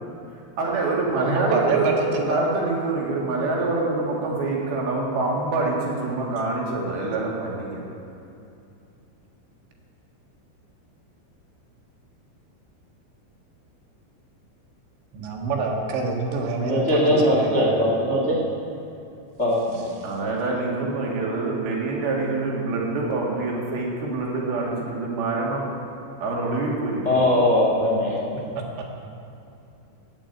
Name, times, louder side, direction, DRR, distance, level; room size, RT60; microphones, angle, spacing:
voice 1, 0.6-7.8 20.0-25.7 26.2-27.2, right 3 dB, 60° right, -3 dB, 4.1 m, -25 dB
voice 2, 1.1-2.5 15.1-17.9 20.0-20.1, right 3 dB, 75° right, 0 dB, 4.0 m, -26 dB
voice 3, 16.6-18.4 19.4-19.6 27.0-28.6, left 1 dB, 60° left, -3 dB, 0.7 m, -21 dB
15.0 x 8.8 x 9.1 m, 2.7 s
omnidirectional pair, 5.2 m